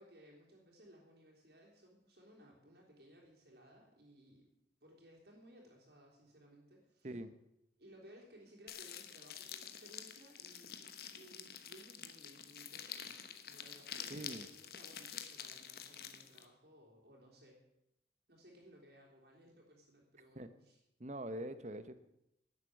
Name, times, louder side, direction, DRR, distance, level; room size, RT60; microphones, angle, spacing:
voice 1, 0.0-4.4 4.8-7.1 7.8-17.6 18.3-20.8, equal, 65° right, -2 dB, 3.4 m, -61 dB
sound 1, 8.7-16.5, left 9 dB, 55° left, 1.2 m, -48 dB
voice 2, 14.1-14.5 20.4-20.5 21.0-22.0, right 1 dB, 40° right, 12 dB, 0.9 m, -44 dB
11.5 x 8.2 x 9.3 m, 0.83 s
head